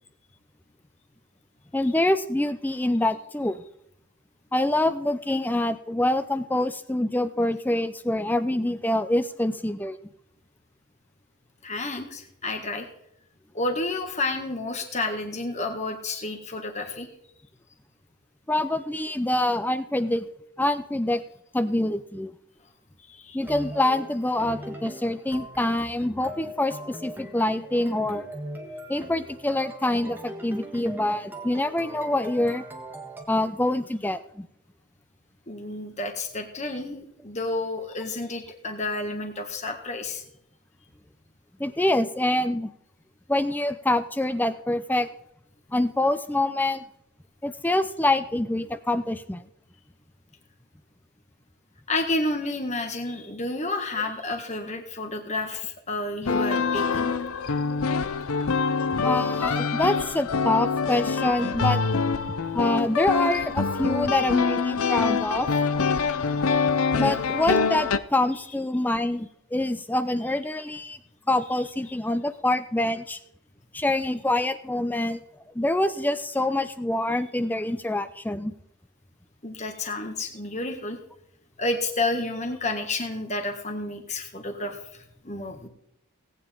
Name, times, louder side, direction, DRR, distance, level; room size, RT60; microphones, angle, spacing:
voice 1, 1.7-3.6 4.5-10.0 18.5-20.2 20.6-21.2 21.5-22.3 23.3-28.3 28.9-32.6 33.3-34.5 41.6-42.7 43.3-45.1 45.7-46.8 47.4-49.4 59.0-61.8 62.5-65.5 67.0-71.0 71.3-73.2 73.7-75.2 75.5-78.5, left 1 dB, 10° left, 11 dB, 0.4 m, -25 dB
voice 2, 11.6-12.9 13.5-17.1 23.1-23.4 35.5-40.2 51.9-57.1 67.0-67.2 79.4-81.0 81.6-85.7, left 2 dB, 30° left, 5 dB, 1.7 m, -30 dB
sound 1, 23.4-33.2, equal, 10° right, 1.5 m, -40 dB
sound 2, 56.3-68.0, left 5 dB, 75° left, 0.6 m, -25 dB
18.0 x 9.0 x 3.8 m, 0.74 s
head